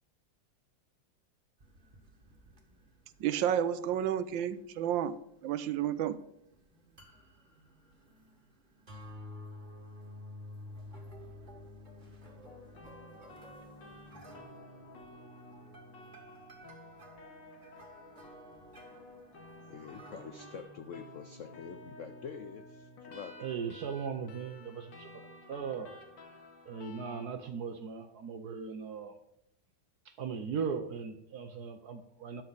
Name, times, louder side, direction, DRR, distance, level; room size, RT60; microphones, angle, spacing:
sound 1, 1.6-20.6, left 1 dB, 25° right, 1.9 m, -52 dB
voice 1, 3.2-5.2 5.4-6.2, right 10 dB, 85° right, 14 dB, 1.5 m, -31 dB
sound 2, 12.4-27.3, left 1 dB, 85° left, 2.4 m, -52 dB
voice 2, 19.7-23.4, left 6 dB, 65° left, 9 dB, 0.8 m, -46 dB
voice 3, 23.4-25.2 25.5-25.9 26.6-29.1 30.0-32.4, right 6 dB, 60° right, 7 dB, 1.3 m, -38 dB
13.0 x 10.5 x 4.1 m, 0.74 s
omnidirectional pair, 2.0 m